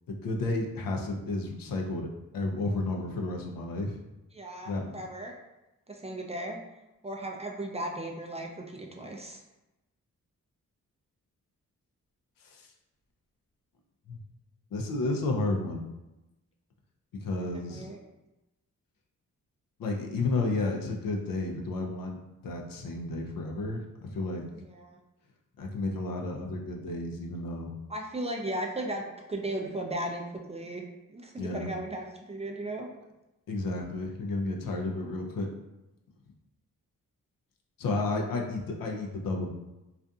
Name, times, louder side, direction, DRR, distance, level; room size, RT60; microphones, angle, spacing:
voice 1, 0.1-2.1 2.3-4.0 4.7-4.9 12.4-12.7 14.1-14.2 14.7-15.8 17.2-17.9 19.8-22.2 22.4-24.4 25.6-27.7 31.4-31.7 33.5-35.5 37.8-39.5, left 2 dB, 75° left, 1 dB, 0.5 m, -32 dB
voice 2, 4.3-5.3 5.9-6.6 7.0-9.4 17.7-18.0 24.5-25.0 27.9-30.2 30.5-30.8 31.1-32.9, right 1 dB, 20° right, 0 dB, 0.4 m, -36 dB
2.5 x 2.4 x 2.3 m, 0.99 s
cardioid pair, 50°, 34 cm